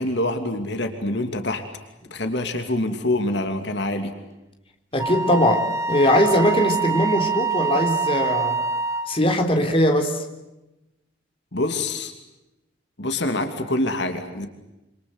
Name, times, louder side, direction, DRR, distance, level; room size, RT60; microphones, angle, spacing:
voice 1, 0.0-1.6 2.1-4.1 11.5-12.1 13.0-14.5, left 1 dB, 65° left, 7 dB, 2.8 m, -25 dB
voice 2, 4.9-8.6 9.1-10.2, left 1 dB, 30° left, 5 dB, 3.7 m, -20 dB
Wind instrument woodwind instrument, 5.0-9.2, right 4 dB, 15° right, 1.7 m, -25 dB
27.5 x 27.0 x 8.0 m, 0.98 s
head